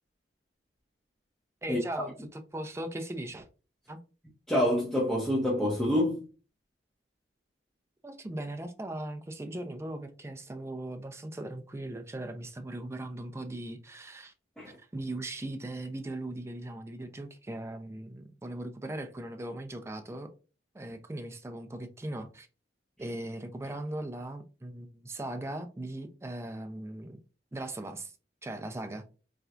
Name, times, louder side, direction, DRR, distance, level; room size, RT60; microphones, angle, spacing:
voice 1, 1.6-3.5 3.9-4.0 8.0-14.3 14.8-20.3 20.7-22.5 23.0-27.2 27.5-28.1 28.4-29.0, right 1 dB, 15° right, 0.4 m, -39 dB
voice 2, 4.5-6.2 14.6-14.8, left 1 dB, 5° left, 0.8 m, -27 dB
4.2 x 2.3 x 2.4 m
head